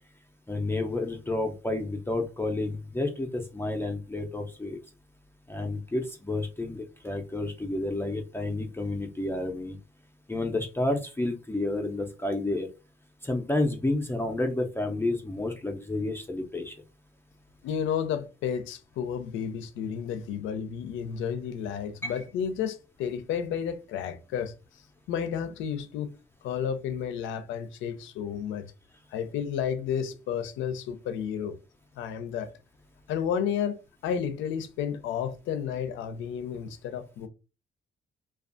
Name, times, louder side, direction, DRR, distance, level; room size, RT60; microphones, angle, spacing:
voice 1, 0.5-4.8 5.5-9.8 10.3-12.7 13.2-16.7 22.0-22.1, left 2 dB, 10° left, 0.4 m, -30 dB
voice 2, 17.6-24.5 25.1-26.1 26.4-28.7 29.1-31.6 32.0-32.5 33.1-33.8 34.0-37.3, left 8 dB, 85° left, 0.4 m, -31 dB
2.4 x 2.2 x 2.4 m
cardioid pair, 70°, 19 cm